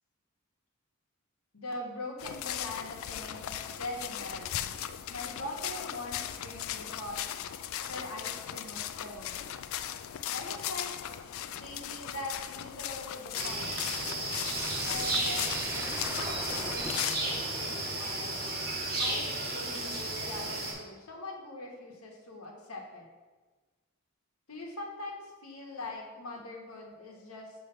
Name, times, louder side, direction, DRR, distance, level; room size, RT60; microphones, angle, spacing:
voice 1, 1.5-4.7 5.1-7.3 7.9-9.4 10.3-10.9 11.6-13.7 14.8-18.4 19.0-23.0 24.5-27.6, left 2 dB, 85° left, 0 dB, 1.3 m, -42 dB
sound 1, 2.2-17.2, left 11 dB, 65° left, 0.3 m, -38 dB
sound 2, 13.3-20.7, right 2 dB, 45° right, 1.8 m, -33 dB
sound 3, 14.5-19.2, right 2 dB, 10° right, 0.4 m, -41 dB
6.8 x 3.2 x 5.5 m, 1.3 s
head